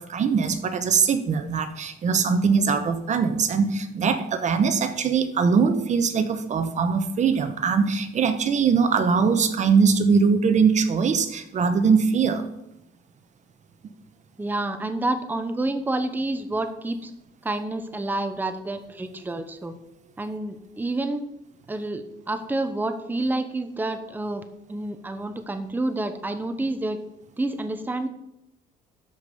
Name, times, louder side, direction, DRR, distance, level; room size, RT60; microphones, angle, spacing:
voice 1, 0.0-12.5, right 5 dB, 45° right, 10 dB, 1.0 m, -21 dB
voice 2, 14.4-17.1 17.4-19.7 20.2-21.2 21.7-24.4 24.7-27.0 27.4-28.1, right 2 dB, 10° right, 8 dB, 0.9 m, -28 dB
13.0 x 5.2 x 5.5 m, 0.84 s
cardioid pair, 110°, 17 cm